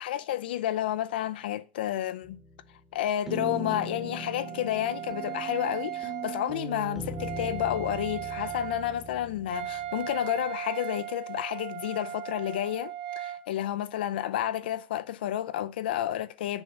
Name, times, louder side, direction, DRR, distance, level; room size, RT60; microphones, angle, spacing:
voice 1, 0.0-2.4 2.9-16.6, left 12 dB, 80° left, 0.6 m, -31 dB
sound 1, 2.2-2.8 3.3-10.2, right 1 dB, 5° right, 1.3 m, -40 dB
Wind instrument woodwind instrument, 3.4-13.4, right 11 dB, 55° right, 1.5 m, -38 dB
7.1 x 5.1 x 6.5 m
supercardioid pair, 150°, 5 cm